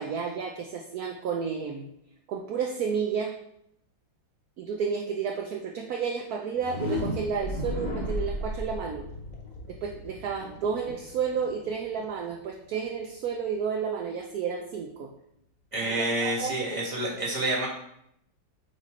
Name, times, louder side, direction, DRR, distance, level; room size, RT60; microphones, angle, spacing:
voice 1, 0.0-1.9 2.3-3.3 4.6-9.0 9.7-15.1 16.0-16.6, right 6 dB, 60° right, 2 dB, 1.1 m, -31 dB
sound 1, 6.5-12.4, left 1 dB, 25° left, 1.3 m, -35 dB
voice 2, 15.7-17.7, right 1 dB, 15° right, -3 dB, 2.0 m, -28 dB
8.9 x 4.9 x 4.3 m, 0.76 s
omnidirectional pair, 2.1 m